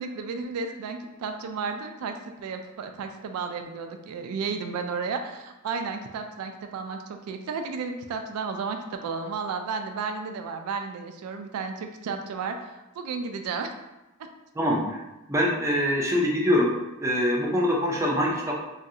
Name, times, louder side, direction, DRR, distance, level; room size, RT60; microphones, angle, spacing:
voice 1, 0.0-13.7 14.2-14.3, right 5 dB, 85° right, 6 dB, 0.3 m, -33 dB
voice 2, 14.6-15.0 15.3-16.7 17.0-18.6, equal, 15° right, -2 dB, 0.4 m, -24 dB
3.0 x 2.4 x 2.7 m, 1.0 s
head